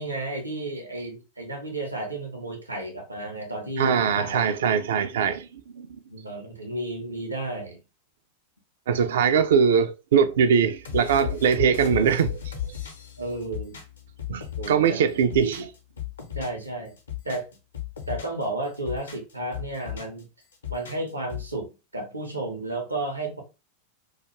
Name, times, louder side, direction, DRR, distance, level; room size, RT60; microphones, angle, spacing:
voice 1, 0.0-4.4 6.1-7.8 13.2-13.8 14.6-15.0 15.4-15.5 16.3-16.9 17.2-17.5 18.1-20.3 20.7-23.4, right 2 dB, 80° right, 0.7 m, -32 dB
voice 2, 3.8-6.0 8.9-12.4 14.3-15.6, right 7 dB, 60° right, 0.3 m, -22 dB
sound 1, 10.8-14.9 15.2-16.7 17.0-18.4 18.7-20.2 20.5-21.5, left 11 dB, 70° left, 0.6 m, -35 dB
2.3 x 2.3 x 2.9 m
figure-of-eight pair, 90°, 0 cm